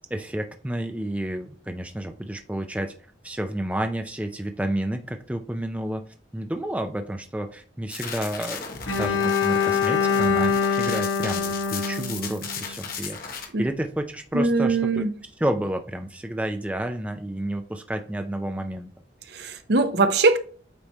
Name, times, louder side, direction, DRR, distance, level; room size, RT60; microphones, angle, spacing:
voice 1, 0.1-2.9 3.2-6.1 6.3-8.7 9.0-13.2 13.6-15.0 15.4-18.9, right 1 dB, 5° right, 0.4 m, -30 dB
sound 1, 7.9-13.4, left 5 dB, 50° left, 1.2 m, -36 dB
Bowed string instrument, 8.9-12.9, left 6 dB, 90° left, 1.1 m, -24 dB
voice 2, 14.3-15.1 19.3-20.4, right 3 dB, 55° right, 0.7 m, -21 dB
8.5 x 3.2 x 4.2 m
head